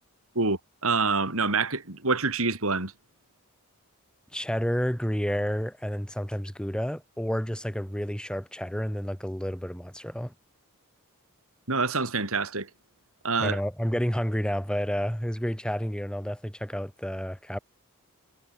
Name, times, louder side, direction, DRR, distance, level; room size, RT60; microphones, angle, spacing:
voice 1, 0.3-2.9 11.7-12.7 13.2-13.6, right 4 dB, 70° right, 4.7 m, -26 dB
voice 2, 4.3-10.3 13.4-17.6, equal, 5° left, 5.0 m, -30 dB
head